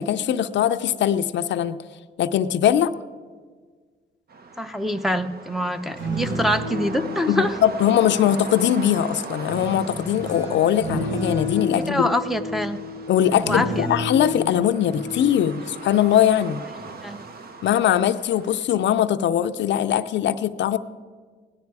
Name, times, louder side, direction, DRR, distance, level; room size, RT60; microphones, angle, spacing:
voice 1, 0.0-1.8 2.2-2.9 7.3-12.1 13.1-16.6 17.6-20.8, left 10 dB, 65° left, 11 dB, 0.5 m, -21 dB
sound 1, 4.3-18.6, right 4 dB, 50° right, 1.0 m, -40 dB
voice 2, 4.6-7.6 11.9-12.8 13.5-13.9 17.0-17.2, equal, ahead, 4 dB, 0.6 m, -24 dB
sound 2, 5.8-8.7 9.4-16.4 16.7-17.1, left 1 dB, 80° right, 3.6 m, -31 dB
16.5 x 10.5 x 4.7 m, 1.5 s
cardioid pair, 90°, 20 cm